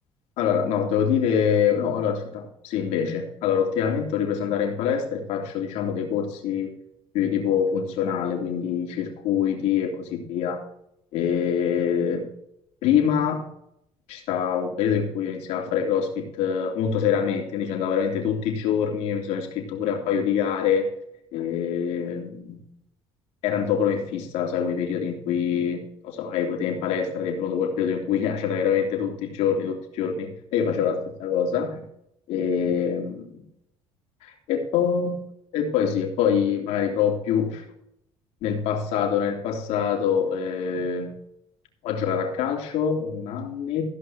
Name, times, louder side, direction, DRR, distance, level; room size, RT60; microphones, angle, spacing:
voice 1, 0.4-6.7 7.1-10.6 11.1-12.3 12.8-13.5 14.1-20.9 21.3-22.6 23.4-31.8 32.3-33.4 34.2-35.2 35.5-37.6 38.4-41.1 41.8-43.8, left 7 dB, 75° left, 1 dB, 3.2 m, -25 dB
15.0 x 5.6 x 6.0 m, 0.77 s
cardioid pair, 100°, 11 cm